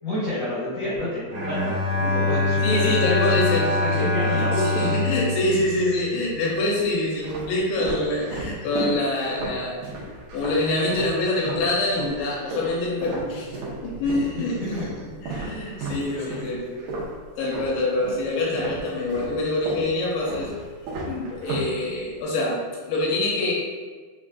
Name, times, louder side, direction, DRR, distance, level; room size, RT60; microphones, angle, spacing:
voice 1, 0.0-5.2 14.0-14.9 15.4-15.8 16.0-16.9, left 1 dB, 55° left, -11 dB, 2.3 m, -30 dB
Bowed string instrument, 1.3-6.6, left 3 dB, 55° right, 1.9 m, -24 dB
voice 2, 2.6-9.8 10.3-14.6 15.2-16.6 17.4-20.5 21.1-22.6 22.9-23.5, left 2 dB, 80° left, -4 dB, 2.5 m, -25 dB
sound 1, 5.2-5.9 6.6-11.7 12.0-18.2 18.5-22.2, right 2 dB, 75° right, 2.0 m, -34 dB
6.1 x 2.4 x 2.2 m, 1.5 s
omnidirectional pair, 4.6 m